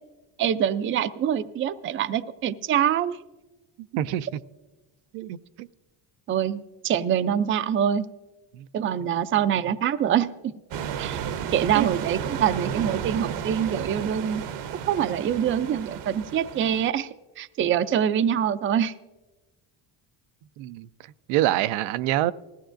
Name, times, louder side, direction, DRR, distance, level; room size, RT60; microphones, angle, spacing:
voice 1, 0.4-3.2 6.3-8.1 8.7-10.3 11.0-14.4 14.9-17.1 17.4-18.9, right 9 dB, 30° right, 0.4 m, -25 dB
voice 2, 3.9-4.4 5.1-5.7 8.6-8.7 11.7-11.9 20.6-20.9 21.3-22.3, right 14 dB, 90° right, 0.5 m, -26 dB
sound 1, 10.7-16.9, right 8 dB, 60° right, 0.8 m, -33 dB
19.5 x 15.5 x 2.5 m
cardioid pair, 110°, 48 cm